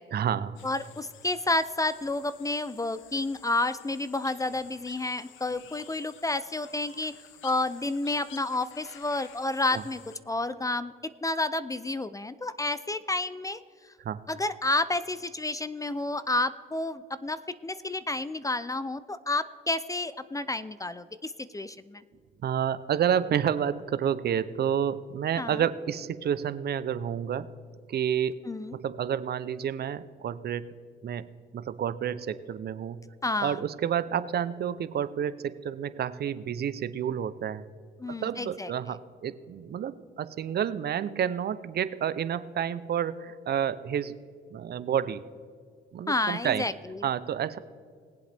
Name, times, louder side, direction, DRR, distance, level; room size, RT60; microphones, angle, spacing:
voice 1, 0.1-0.6 9.7-9.8 14.0-14.2 22.4-27.5 27.9-28.4 28.8-30.7 31.0-31.3 31.5-33.0 33.4-37.7 38.1-44.2 44.5-45.2 45.9-46.6 47.0-47.6, right 9 dB, 55° right, 15 dB, 0.6 m, -29 dB
sound 1, 0.6-10.2, left 9 dB, 80° left, 0.8 m, -52 dB
voice 2, 0.6-7.1 7.4-10.0 10.3-10.9 11.2-13.6 14.3-22.0 25.4-25.6 28.5-28.7 33.2-33.6 38.0-38.7 46.1-47.0, left 2 dB, 15° left, 15 dB, 0.4 m, -30 dB
20.0 x 7.9 x 3.4 m, 2.1 s
cardioid pair, 90°, 20 cm